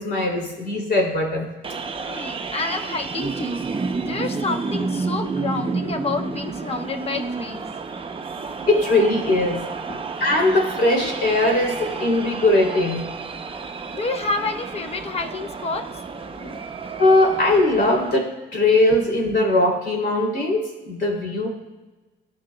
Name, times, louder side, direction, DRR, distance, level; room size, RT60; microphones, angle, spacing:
voice 1, 0.0-1.4 8.7-9.6 10.2-13.0 17.0-21.5, left 2 dB, 55° left, 0 dB, 2.8 m, -20 dB
sound 1, 1.6-18.2, right 4 dB, 25° right, 0.6 m, -30 dB
voice 2, 2.1-3.6 4.0-7.7 9.9-10.0 13.9-15.8 16.3-16.6, left 3 dB, 30° left, 5 dB, 0.9 m, -29 dB
15.5 x 6.3 x 2.2 m, 1.2 s
cardioid pair, 90°, 20 cm